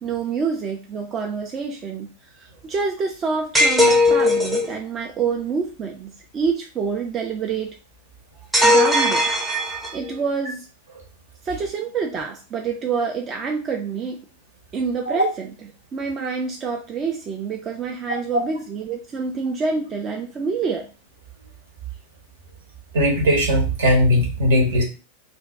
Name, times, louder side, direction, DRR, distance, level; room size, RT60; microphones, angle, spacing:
voice 1, 0.0-2.1 2.3-7.8 8.6-9.2 9.9-10.7 11.4-14.2 14.7-15.5 15.9-20.9, right 5 dB, 25° right, 2 dB, 0.4 m, -27 dB
sound 1, 3.5-4.7 8.5-10.1, left 1 dB, 10° right, 0.8 m, -18 dB
voice 2, 22.9-24.8, equal, 60° right, 0 dB, 1.0 m, -18 dB
2.5 x 2.3 x 3.2 m, 0.34 s
figure-of-eight pair, 90°, 0 cm